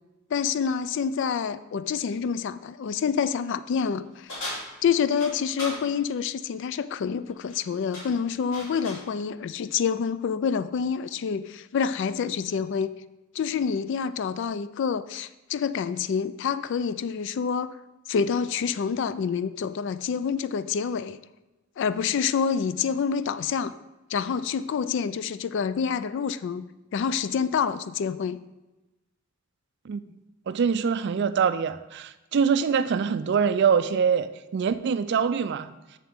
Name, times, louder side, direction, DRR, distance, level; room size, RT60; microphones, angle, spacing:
voice 1, 0.3-4.3 4.8-12.9 13.3-17.8 18.1-21.2 21.8-23.7 24.1-26.7 26.9-28.4, left 6 dB, 55° left, 15 dB, 0.3 m, -27 dB
sound 1, 4.3-5.8 7.3-7.6 7.9-9.1, left 1 dB, 75° left, 2.7 m, -37 dB
voice 2, 30.5-35.7, right 6 dB, 55° right, 12 dB, 0.3 m, -24 dB
7.3 x 6.8 x 3.5 m, 1.0 s
head